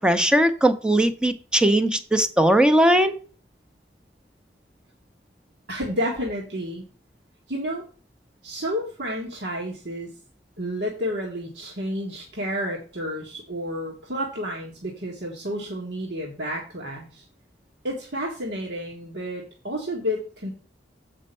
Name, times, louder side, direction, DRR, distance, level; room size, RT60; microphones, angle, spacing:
voice 1, 0.0-3.2, right 1 dB, 5° right, 0.8 m, -19 dB
voice 2, 5.7-6.8 7.5-7.9 8.4-10.1 10.6-17.2 17.8-20.5, equal, 75° right, 1.8 m, -30 dB
7.9 x 5.3 x 5.4 m
head